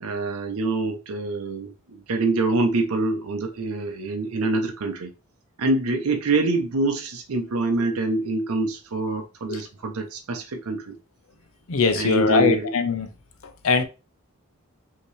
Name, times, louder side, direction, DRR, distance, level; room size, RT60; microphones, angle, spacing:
voice 1, 0.0-5.1 5.6-11.0 11.9-12.7, right 2 dB, 80° right, 0.6 m, -25 dB
voice 2, 11.7-13.1 13.6-13.8, left 5 dB, 70° left, 0.6 m, -21 dB
5.4 x 2.9 x 3.1 m
head